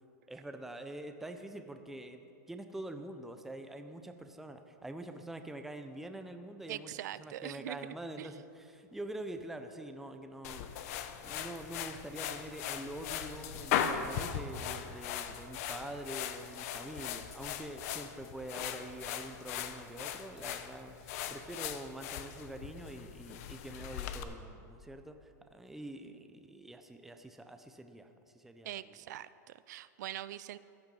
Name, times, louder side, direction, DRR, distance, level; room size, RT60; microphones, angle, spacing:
voice 1, 0.3-2.2 2.5-6.9 7.2-28.1 28.3-29.0, right 1 dB, 5° right, 7 dB, 0.6 m, -45 dB
voice 2, 6.7-7.8 8.2-8.3 28.6-30.6, right 13 dB, 70° right, 16 dB, 0.4 m, -42 dB
sound 1, 10.4-24.2, left 9 dB, 55° left, 0.9 m, -39 dB
15.0 x 8.8 x 5.4 m, 2.6 s
supercardioid pair, 140°, 10 cm